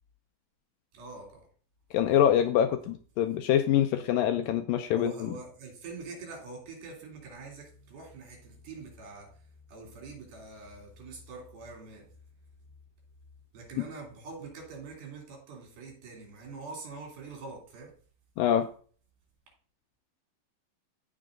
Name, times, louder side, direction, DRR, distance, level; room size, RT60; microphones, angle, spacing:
voice 1, 0.9-1.5 4.9-9.3 9.7-12.1 13.5-17.9, right 3 dB, 70° right, 4.8 m, -44 dB
voice 2, 1.9-5.3 13.8-13.9 18.4-18.7, left 10 dB, 85° left, 2.0 m, -25 dB
15.0 x 6.1 x 2.6 m
omnidirectional pair, 4.5 m